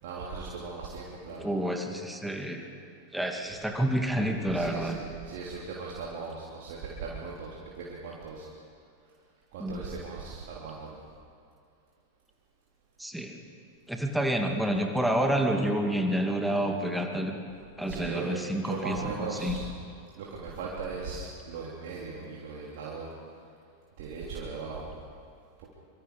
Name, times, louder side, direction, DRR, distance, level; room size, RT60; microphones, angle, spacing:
voice 1, 0.0-1.5 4.5-8.5 9.5-11.0 17.9-18.4 18.6-19.7 20.2-23.1 24.0-24.9, right 4 dB, 50° right, -5 dB, 3.6 m, -38 dB
voice 2, 1.4-2.6 3.1-5.0 9.6-9.8 13.0-13.4 13.9-17.4 17.8-19.6, right 1 dB, ahead, 3 dB, 2.5 m, -29 dB
26.0 x 25.5 x 5.4 m, 2.5 s
figure-of-eight pair, 90°, 0 cm